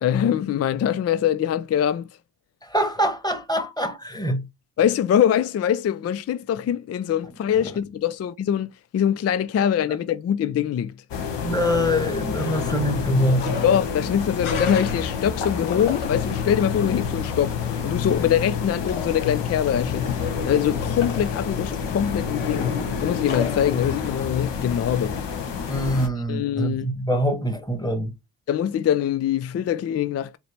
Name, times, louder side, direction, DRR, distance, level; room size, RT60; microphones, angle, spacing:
voice 1, 0.0-2.1 4.8-10.9 13.6-25.2 26.3-26.9 28.5-30.4, left 9 dB, 35° left, 0.4 m, -23 dB
voice 2, 2.6-4.5 11.4-13.6 25.7-28.1, equal, 10° left, 1.4 m, -24 dB
sound 1, 11.1-26.1, left 6 dB, 60° left, 1.4 m, -29 dB
sound 2, 13.1-24.1, left 4 dB, 80° left, 1.3 m, -33 dB
4.2 x 2.9 x 3.3 m
hypercardioid pair, 50°, 48 cm